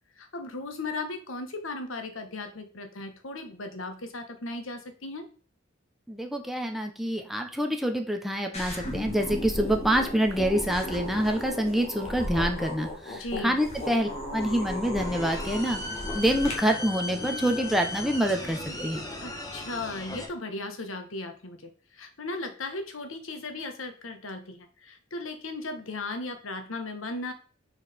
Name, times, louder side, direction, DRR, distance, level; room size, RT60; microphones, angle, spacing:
voice 1, 0.2-5.2 13.1-13.6 19.2-27.3, left 2 dB, 85° left, 6 dB, 1.3 m, -36 dB
voice 2, 6.1-15.8 16.1-19.0, equal, ahead, 3 dB, 1.0 m, -26 dB
sound 1, 8.5-16.5, left 1 dB, 35° left, 2.1 m, -35 dB
sound 2, 15.0-20.3, left 2 dB, 20° left, 1.4 m, -37 dB
6.4 x 4.8 x 5.1 m, 0.39 s
head